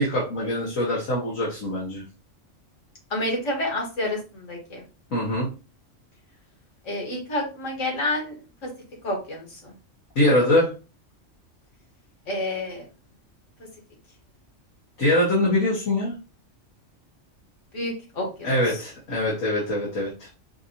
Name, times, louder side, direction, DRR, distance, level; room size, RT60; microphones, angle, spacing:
voice 1, 0.0-2.0 5.1-5.5 10.2-10.7 15.0-16.2 18.4-20.3, left 1 dB, 90° left, -6 dB, 1.9 m, -23 dB
voice 2, 3.1-4.8 6.8-8.4 8.6-8.7 9.0-9.7 12.3-12.9 17.7-18.8, left 1 dB, 70° left, 0 dB, 1.9 m, -29 dB
5.8 x 2.7 x 2.8 m, 0.32 s
omnidirectional pair, 1.3 m